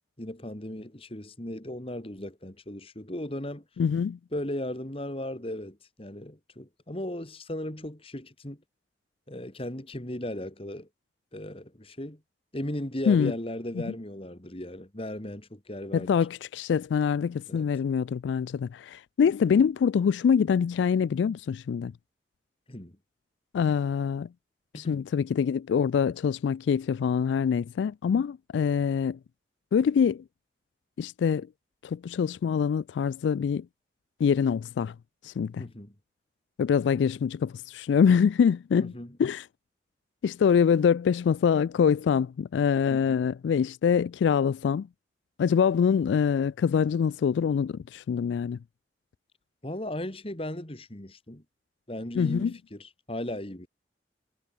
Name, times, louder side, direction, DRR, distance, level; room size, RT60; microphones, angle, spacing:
voice 1, 0.2-3.6 4.3-8.6 9.3-10.9 11.3-12.2 12.5-16.1 17.5-17.7 22.7-22.9 24.7-25.0 35.6-35.9 38.8-39.2 42.9-43.2 49.6-51.4 51.9-53.7, left 1 dB, 30° left, 2.5 m, -36 dB
voice 2, 3.8-4.2 13.1-13.3 13.9-14.0 15.9-21.9 23.5-24.3 24.7-29.2 29.7-30.2 31.0-31.5 31.8-33.7 34.2-34.9 35.2-35.6 36.6-38.9 39.2-39.5 40.2-44.9 45.4-48.6 52.2-52.5, left 7 dB, 85° left, 0.3 m, -25 dB
head